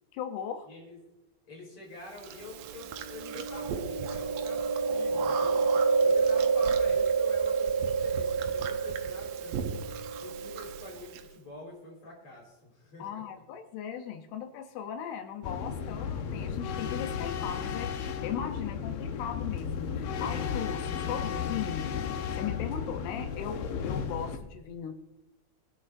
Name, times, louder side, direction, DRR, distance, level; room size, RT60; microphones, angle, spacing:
voice 1, 0.1-0.7 13.0-21.9 22.3-25.0, left 8 dB, 90° left, 5 dB, 2.9 m, -38 dB
voice 2, 0.7-1.0 1.5-5.6 6.0-9.8 10.2-13.2, left 2 dB, 35° left, -3 dB, 4.9 m, -47 dB
Chewing mastication, 2.2-11.2, right 5 dB, 75° right, 2.1 m, -28 dB
sound 1, 15.4-24.4, left 7 dB, 75° left, 2.4 m, -34 dB
23.5 x 9.6 x 2.6 m, 1.0 s
omnidirectional pair, 4.5 m